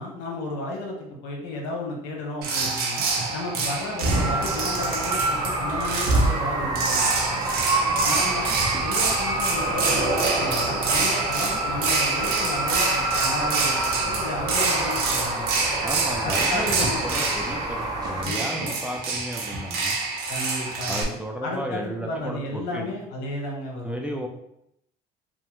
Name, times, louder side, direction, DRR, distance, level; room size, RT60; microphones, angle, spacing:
voice 1, 0.0-3.1 3.3-7.1 8.0-8.5 8.8-15.6 16.2-17.2 18.2-18.7 20.3-21.1 21.4-24.0, left 2 dB, 75° left, -1 dB, 0.9 m, -33 dB
sound 1, 2.4-21.0, right 3 dB, 65° right, 0.7 m, -26 dB
sound 2, 4.1-18.2, right 2 dB, 20° right, 0.7 m, -28 dB
sound 3, 9.4-14.3, right 2 dB, 45° right, 1.0 m, -33 dB
voice 2, 15.8-20.0 20.9-22.9 23.8-24.3, right 1 dB, 5° right, 1 dB, 0.3 m, -33 dB
2.9 x 2.1 x 3.0 m, 0.78 s
supercardioid pair, 100°, 18 cm